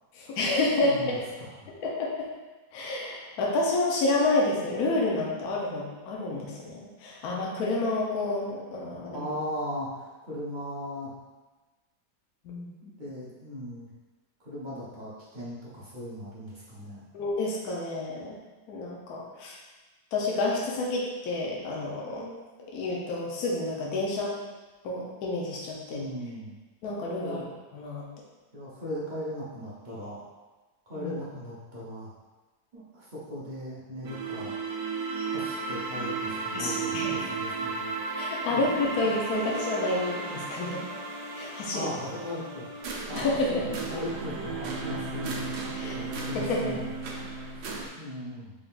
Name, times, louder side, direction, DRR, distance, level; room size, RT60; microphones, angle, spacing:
voice 1, 0.2-1.2 1.8-2.3 2.7-9.3 12.4-12.7 17.1-18.4 18.7-19.5 20.1-22.4 22.7-24.3 24.8-26.0 26.8-27.4 27.7-28.1 31.0-31.1 36.5-37.1 38.2-40.8 41.3-41.9 43.1-43.6 45.7-46.0 46.3-46.8, left 2 dB, 65° left, -3 dB, 1.0 m, -29 dB
voice 2, 0.8-1.7 9.1-11.1 12.8-13.9 14.4-17.0 25.9-26.5 27.2-27.5 28.5-30.3 30.9-32.1 32.7-34.5 35.2-38.1 38.5-39.0 41.7-42.7 43.1-45.5 45.8-46.9 48.0-48.5, equal, 50° right, -8 dB, 0.5 m, -38 dB
sound 1, 34.0-47.9, right 4 dB, 70° right, 1.0 m, -34 dB
3.8 x 3.6 x 2.4 m, 1.2 s
omnidirectional pair, 2.0 m